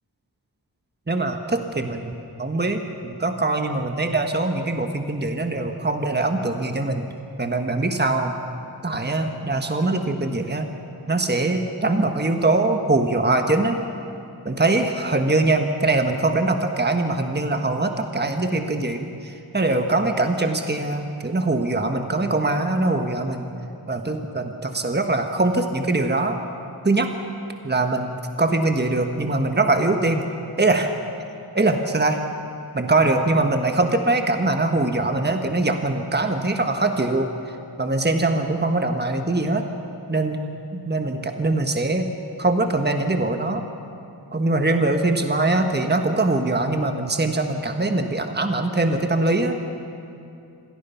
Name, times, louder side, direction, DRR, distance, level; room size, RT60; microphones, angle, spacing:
voice 1, 1.1-2.1 2.4-7.1 7.4-8.3 8.8-10.7 11.1-13.8 14.4-23.5 23.9-26.4 26.8-27.1 27.6-28.1 28.4-30.2 30.6-30.9 31.5-32.2 32.7-37.3 37.8-39.7 40.1-40.4 40.7-42.1 42.4-43.6 44.3-49.6, right 2 dB, 25° right, 5 dB, 1.4 m, -22 dB
25.5 x 18.0 x 5.7 m, 2.6 s
wide cardioid pair, 55°, 40 cm